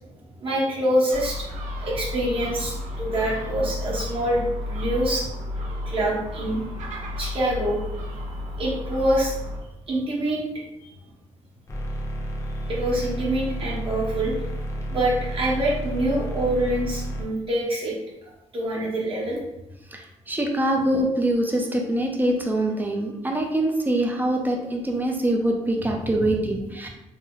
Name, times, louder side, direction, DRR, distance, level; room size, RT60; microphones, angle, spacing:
voice 1, 0.4-1.5 1.8-5.3 5.8-6.6 7.2-7.8 8.6-9.3 9.9-10.4 10.8-10.9 12.7-14.3 14.9-17.9 18.5-19.4 20.7-20.8 26.0-26.5, right 1 dB, 45° right, -5 dB, 1.1 m, -25 dB
Gull seagull, 1.1-9.6, left 1 dB, 75° right, 0.7 m, -32 dB
sound 1, 11.7-17.2, equal, 25° left, 0.7 m, -31 dB
voice 2, 19.9-26.9, right 1 dB, 15° right, 2 dB, 0.5 m, -24 dB
3.2 x 2.1 x 3.7 m, 0.89 s
cardioid pair, 125°, 13 cm